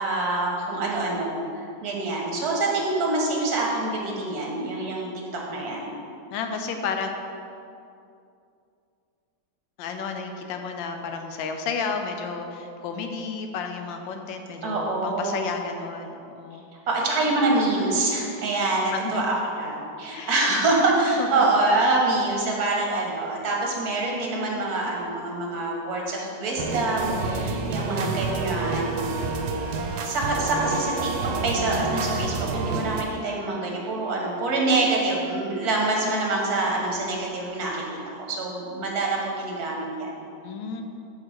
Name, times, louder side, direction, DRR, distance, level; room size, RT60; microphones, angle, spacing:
voice 1, 0.0-5.9 14.6-15.5 16.9-29.0 29.5-29.6 30.0-31.1 31.4-40.3, right 2 dB, 55° right, -1 dB, 1.6 m, -26 dB
voice 2, 6.3-7.1 9.8-16.6 18.9-19.2 20.1-20.4 21.2-21.4 40.4-40.8, left 5 dB, 85° left, 5 dB, 1.4 m, -32 dB
sound 1, 26.6-33.0, right 3 dB, 75° right, 1.3 m, -28 dB
5.6 x 4.8 x 6.3 m, 2.6 s
omnidirectional pair, 2.0 m